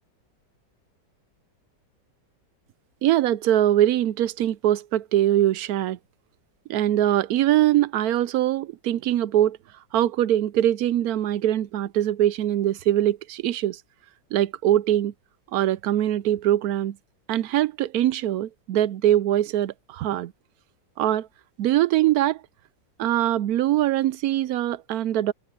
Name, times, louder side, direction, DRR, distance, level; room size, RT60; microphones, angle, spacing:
voice 1, 3.0-6.0 6.7-9.6 9.9-13.8 14.3-15.1 15.5-17.0 17.3-20.3 21.0-21.3 21.6-22.4 23.0-25.3, right 12 dB, 70° right, 0.9 m, -22 dB
omnidirectional pair, 1.9 m